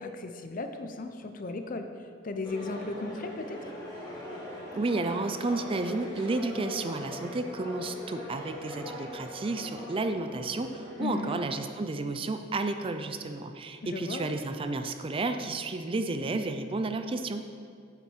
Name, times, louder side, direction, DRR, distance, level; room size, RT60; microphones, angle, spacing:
voice 1, 0.0-1.9 2.2-3.6 11.0-11.4 13.8-14.3, left 3 dB, 45° left, 7 dB, 0.6 m, -36 dB
sound 1, 2.4-11.7, left 1 dB, 20° left, 1.9 m, -41 dB
voice 2, 4.7-17.5, right 2 dB, 30° right, 8 dB, 0.4 m, -32 dB
8.2 x 7.2 x 4.5 m, 2.2 s
head